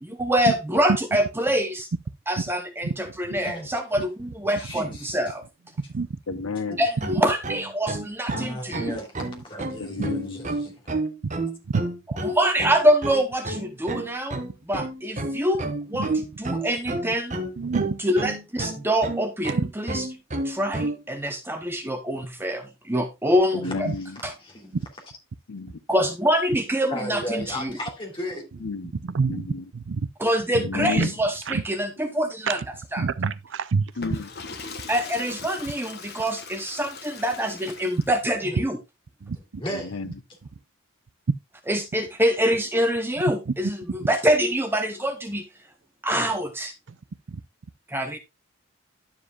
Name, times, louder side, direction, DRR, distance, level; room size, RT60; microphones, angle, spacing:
voice 1, 0.0-1.9 2.3-5.4 6.8-8.9 12.2-14.4 14.7-16.1 16.4-17.4 18.0-19.5 19.9-20.0 20.4-23.9 24.2-24.3 25.9-27.7 30.2-32.6 32.9-33.0 34.9-38.8 41.7-45.4 46.0-46.7 47.9-48.2, equal, 10° right, 0.7 m, -25 dB
voice 2, 4.6-5.3 8.3-10.8 23.6-23.8 24.4-24.7 26.9-28.6 38.4-38.6 39.6-40.1 46.1-46.4, equal, 25° left, 3.0 m, -35 dB
voice 3, 6.3-6.9 9.8-10.4 23.5-24.2 25.5-25.8 28.6-28.9 29.3-29.6 30.6-31.1 34.0-34.3 39.9-40.1, left 4 dB, 80° left, 0.8 m, -31 dB
sound 1, 6.7-21.0, right 2 dB, 35° right, 1.2 m, -30 dB
voice 4, 17.6-17.9 19.5-19.7 23.9-24.0 24.7-24.8 28.9-29.4 29.7-30.0 30.5-31.1 31.5-31.6 32.5-32.7 33.0-33.9 39.2-39.6 43.5-43.7 46.9-47.0 47.3-47.4, right 4 dB, 60° right, 0.5 m, -27 dB
Water / Toilet flush, 33.9-38.4, left 4 dB, 50° left, 1.4 m, -40 dB
11.5 x 7.3 x 2.4 m
head